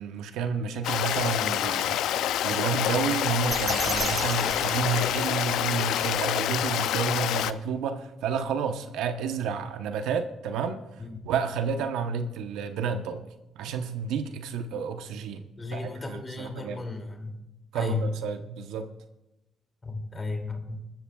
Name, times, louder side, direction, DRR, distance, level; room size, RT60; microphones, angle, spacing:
voice 1, 0.0-2.2 2.4-13.2 13.6-15.4 15.7-16.9 17.7-18.9, right 6 dB, 90° right, 7 dB, 0.9 m, -30 dB
Stream, 0.8-7.5, left 11 dB, 85° left, 0.4 m, -27 dB
sound 1, 3.5-5.6, right 4 dB, 35° right, 0.5 m, -34 dB
voice 2, 15.6-17.4 17.7-18.1 19.8-20.8, left 3 dB, 25° left, 3 dB, 2.6 m, -34 dB
23.5 x 13.5 x 2.4 m, 0.95 s
cardioid pair, 90°, 0 cm